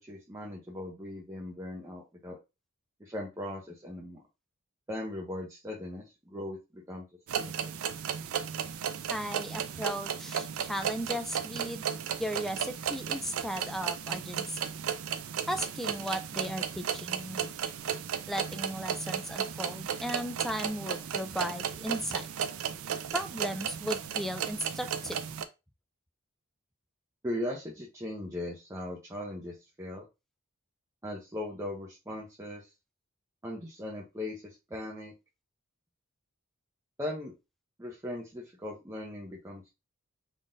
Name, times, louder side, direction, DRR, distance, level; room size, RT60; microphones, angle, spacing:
voice 1, 0.0-2.4 3.0-4.2 4.9-7.0 7.3-7.7 27.2-30.0 31.0-32.7 33.4-35.1 37.0-37.3 37.8-39.8, left 1 dB, 15° right, -3 dB, 0.7 m, -39 dB
sound 1, 7.3-25.4, right 8 dB, 75° right, 0.4 m, -34 dB
voice 2, 9.1-11.8 12.2-14.7 15.5-17.5 18.3-22.3 23.1-25.2, equal, ahead, 7 dB, 0.3 m, -36 dB
3.7 x 3.6 x 2.6 m, 0.25 s
head